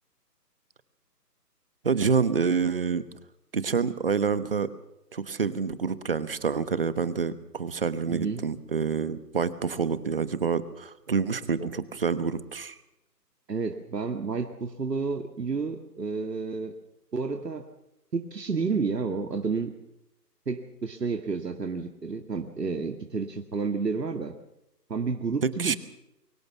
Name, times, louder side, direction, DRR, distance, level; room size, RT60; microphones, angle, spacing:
voice 1, 1.8-3.0 3.5-4.7 5.1-12.8 25.4-25.8, right 5 dB, 35° right, 15 dB, 1.2 m, -27 dB
voice 2, 8.1-8.4 11.6-11.7 13.5-16.7 17.1-17.7 18.1-19.7 20.5-24.3 24.9-25.8, right 4 dB, 75° right, 6 dB, 2.1 m, -30 dB
24.0 x 17.0 x 7.1 m, 0.87 s
figure-of-eight pair, 160°, 49 cm